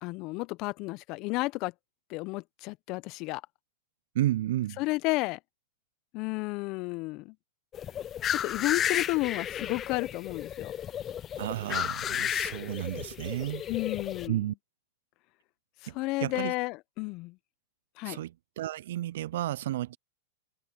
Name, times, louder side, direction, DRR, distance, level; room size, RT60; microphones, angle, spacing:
voice 1, 0.0-1.7 2.1-3.4 4.8-5.4 6.1-7.3 8.3-10.7 13.7-14.4 15.8-17.4 18.0-18.2, left 23 dB, 45° left, 1.1 m, -32 dB
voice 2, 4.1-4.8 11.4-13.6 14.3-14.5 15.9-16.5 18.1-20.0, right 14 dB, 65° right, 0.5 m, -32 dB
sound 1, 7.7-14.3, left 10 dB, 30° left, 0.5 m, -33 dB
hypercardioid pair, 105°, 0 cm